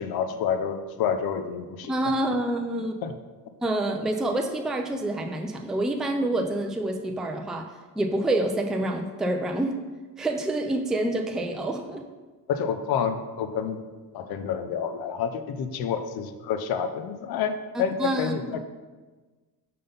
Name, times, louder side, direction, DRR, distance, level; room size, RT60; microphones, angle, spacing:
voice 1, 0.0-1.9 3.0-3.1 12.5-13.8 14.1-18.6, left 7 dB, 70° left, 9 dB, 0.6 m, -28 dB
voice 2, 1.9-2.9 3.6-9.8 10.2-12.0 17.7-18.6, right 1 dB, ahead, 3 dB, 0.3 m, -27 dB
5.6 x 3.8 x 5.2 m, 1.3 s
cardioid pair, 130°, 39 cm